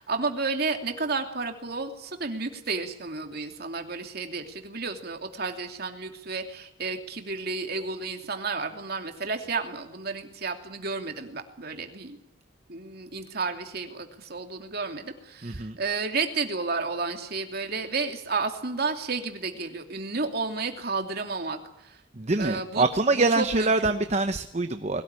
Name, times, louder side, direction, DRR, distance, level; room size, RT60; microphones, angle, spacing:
voice 1, 0.0-12.2 12.7-22.0 22.4-22.9 23.1-23.9, right 4 dB, 50° right, 5 dB, 2.8 m, -32 dB
voice 2, 15.4-15.8 22.1-25.0, right 3 dB, 35° right, 8 dB, 0.9 m, -25 dB
21.5 x 18.0 x 9.8 m, 0.87 s
head